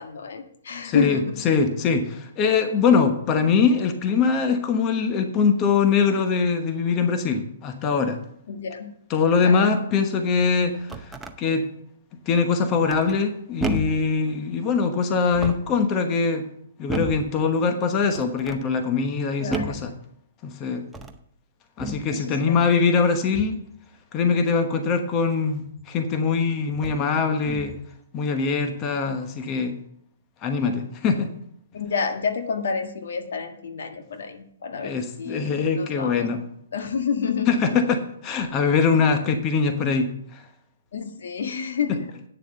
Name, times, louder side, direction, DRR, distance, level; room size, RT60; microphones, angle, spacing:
voice 1, 0.0-1.4 8.5-8.9 9.4-9.8 19.4-19.8 22.1-22.6 31.7-36.3 36.7-37.7 40.9-42.1, left 6 dB, 70° left, 6 dB, 1.5 m, -29 dB
voice 2, 0.8-1.2 1.4-8.2 9.1-11.6 12.3-16.4 16.8-19.9 20.4-20.9 21.8-23.6 24.1-27.7 28.1-29.8 30.4-31.3 34.8-36.4 37.5-38.0 38.2-40.4, left 5 dB, 25° left, 6 dB, 1.1 m, -22 dB
sound 1, 10.6-11.4 12.9-13.3 13.6-14.1 15.2-15.8 16.9-17.3 18.1-18.6 19.5-19.9 20.8-21.2 21.8-22.1 23.3-23.7 25.8-25.9 26.7-27.1 27.4-27.9, right 2 dB, 5° right, 0.7 m, -32 dB
9.2 x 7.0 x 6.8 m, 0.69 s
hypercardioid pair, 145°, 0 cm